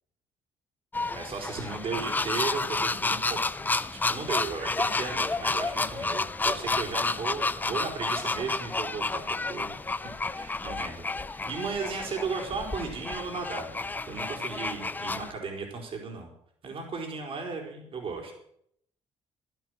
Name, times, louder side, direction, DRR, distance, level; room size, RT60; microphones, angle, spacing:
sound 1, 0.9-15.3, left 3 dB, 15° left, 0.6 m, -31 dB
voice 1, 1.1-3.4 3.9-9.7 10.1-16.3 16.6-18.3, right 4 dB, 50° right, 2 dB, 4.4 m, -36 dB
15.5 x 11.5 x 6.5 m, 0.69 s
cardioid pair, 115°, 12 cm